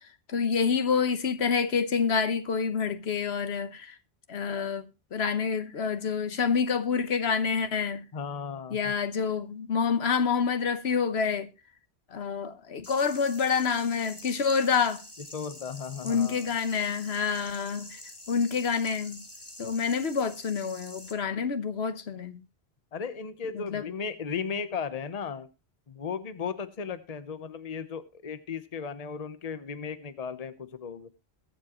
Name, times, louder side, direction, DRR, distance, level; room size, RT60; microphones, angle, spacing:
voice 1, 0.3-3.9 4.3-4.8 5.1-8.0 8.7-11.5 12.1-15.0 16.0-17.9 18.3-19.2 19.6-22.4 23.5-23.8, left 6 dB, 75° left, 1.3 m, -27 dB
voice 2, 8.1-8.9 15.3-16.5 22.9-25.5 25.9-31.1, left 6 dB, 40° left, 0.9 m, -36 dB
sound 1, 12.8-21.1, left 1 dB, 20° left, 1.8 m, -46 dB
22.0 x 7.4 x 3.0 m
omnidirectional pair, 1.1 m